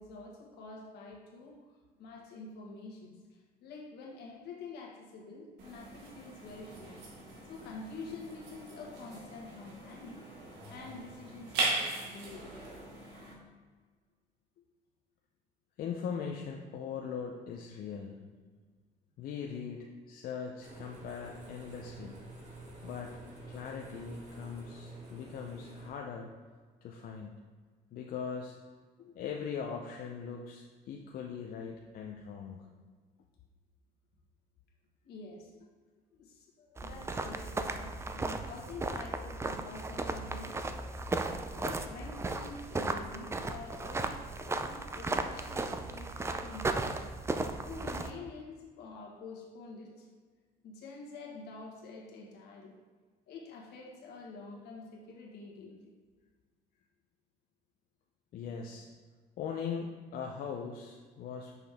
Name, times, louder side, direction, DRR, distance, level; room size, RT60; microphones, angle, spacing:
voice 1, 0.0-1.6 2.0-7.0 7.4-10.2 10.7-12.5 35.0-35.5 36.1-40.7 41.5-47.0 47.6-50.1 50.6-52.8 53.3-55.9, left 3 dB, 75° left, -1 dB, 1.4 m, -47 dB
sound 1, 5.6-13.3, right 3 dB, 85° right, 1.7 m, -39 dB
voice 2, 15.8-18.2 19.2-22.2 22.8-23.2 23.5-26.3 26.8-27.4 27.9-28.6 29.0-32.6 58.3-58.9 59.4-61.5, left 6 dB, 60° left, 1 dB, 0.6 m, -40 dB
sound 2, 20.6-25.9, right 2 dB, 45° right, 1.8 m, -48 dB
sound 3, 36.8-48.1, right 3 dB, 15° right, 0.4 m, -36 dB
6.0 x 5.5 x 3.5 m, 1.5 s
cardioid pair, 110°, 17 cm